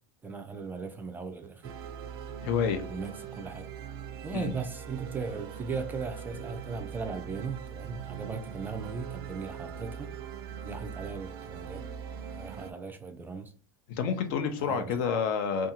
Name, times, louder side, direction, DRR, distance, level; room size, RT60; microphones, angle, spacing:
voice 1, 0.2-1.8 2.9-3.7 4.2-10.1 10.6-11.8 12.3-13.5 14.6-15.0, right 4 dB, 15° right, 0.3 m, -38 dB
sound 1, 1.6-12.7, right 8 dB, 80° right, 0.4 m, -41 dB
voice 2, 2.4-2.8 4.3-4.5 13.9-15.7, left 6 dB, 60° left, 0.6 m, -29 dB
2.6 x 2.3 x 2.8 m
supercardioid pair, 130°, 12 cm